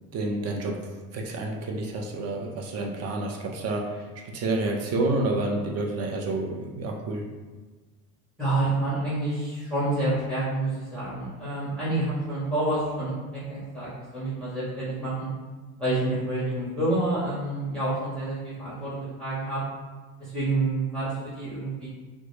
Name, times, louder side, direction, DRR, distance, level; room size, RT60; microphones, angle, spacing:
voice 1, 0.1-0.7 1.1-3.8 4.3-7.2, right 2 dB, 35° right, 1 dB, 0.4 m, -29 dB
voice 2, 8.4-15.3 15.8-19.6 20.2-21.9, right 2 dB, ahead, -11 dB, 0.7 m, -28 dB
2.0 x 2.0 x 3.0 m, 1.3 s
supercardioid pair, 95°, 46 cm